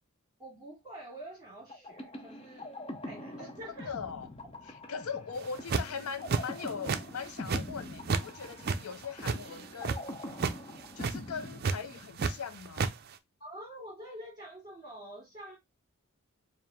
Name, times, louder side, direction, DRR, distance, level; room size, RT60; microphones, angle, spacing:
voice 1, 0.4-2.8 3.0-3.9 13.4-15.6, right 1 dB, 20° right, 2.5 m, -46 dB
sound 1, 1.7-12.4, left 1 dB, 25° left, 0.6 m, -44 dB
voice 2, 3.9-4.3 4.9-10.0 11.0-12.9, left 6 dB, 75° left, 0.5 m, -40 dB
sound 2, 5.4-6.0 6.3-7.0 7.3-8.3 8.5-10.0 10.3-10.6 10.9-11.1 11.6-12.3 12.6-12.9, right 4 dB, 45° right, 0.4 m, -30 dB
4.6 x 2.5 x 3.4 m
head